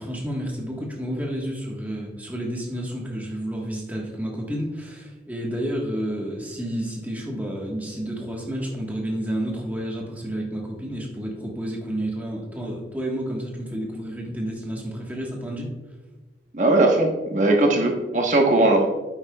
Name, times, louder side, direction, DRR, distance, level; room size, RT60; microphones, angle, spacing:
voice 1, 0.0-15.7, right 1 dB, 10° right, -2 dB, 1.4 m, -30 dB
voice 2, 16.5-18.9, right 2 dB, 45° right, 2 dB, 1.1 m, -19 dB
10.0 x 8.7 x 2.3 m, 1.2 s
head